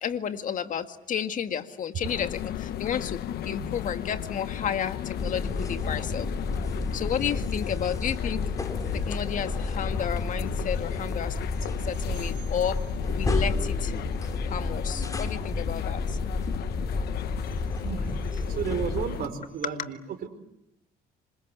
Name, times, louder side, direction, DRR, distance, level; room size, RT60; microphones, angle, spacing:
voice 1, 0.0-6.3 6.9-8.4 8.9-13.9 14.5-16.2 16.5-17.2 19.8-19.9, left 8 dB, 50° left, 8 dB, 2.0 m, -32 dB
sound 1, 2.0-19.3, left 11 dB, 70° left, 1.3 m, -36 dB
sound 2, 5.2-19.1, left 3 dB, 20° left, 3.1 m, -31 dB
voice 2, 18.5-20.3, right 7 dB, 60° right, 8 dB, 5.0 m, -33 dB
27.5 x 25.5 x 8.2 m, 0.82 s
cardioid pair, 110°, 17 cm